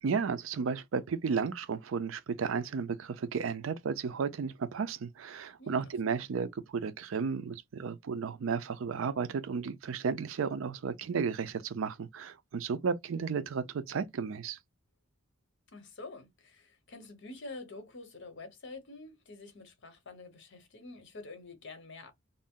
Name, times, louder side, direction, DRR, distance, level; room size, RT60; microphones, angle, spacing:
voice 1, 0.0-14.6, right 5 dB, 70° right, 0.4 m, -33 dB
voice 2, 5.6-6.3 15.7-22.1, left 3 dB, 65° left, 0.9 m, -47 dB
2.6 x 2.0 x 3.6 m
head